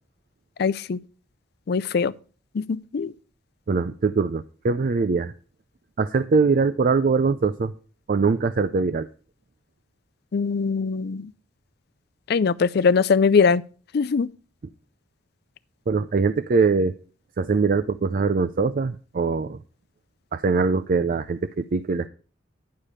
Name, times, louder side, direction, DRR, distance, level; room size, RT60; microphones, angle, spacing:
voice 1, 0.6-1.0 1.7-2.1 2.5-3.1 10.3-11.3 12.3-13.6 13.9-14.3, left 5 dB, 55° left, 0.4 m, -21 dB
voice 2, 3.7-5.3 6.0-7.7 8.1-9.1 15.9-16.9 17.4-19.6 20.3-22.1, right 4 dB, 45° right, 0.4 m, -22 dB
10.5 x 5.0 x 5.4 m
head